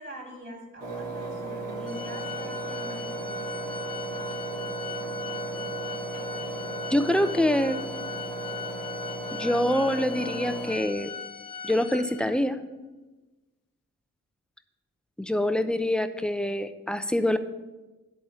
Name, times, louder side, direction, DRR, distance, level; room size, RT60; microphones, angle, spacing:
voice 1, 0.0-3.7, equal, 35° right, -5 dB, 3.2 m, -43 dB
Engine, 0.8-10.7, right 3 dB, 85° right, 2.9 m, -35 dB
Organ, 1.9-12.5, left 6 dB, 85° left, 1.1 m, -39 dB
voice 2, 6.9-7.8 9.3-11.1 11.6-12.6 15.2-17.4, left 1 dB, 5° left, 10 dB, 0.8 m, -25 dB
11.0 x 4.2 x 7.3 m, 1.1 s
supercardioid pair, 45°, 32 cm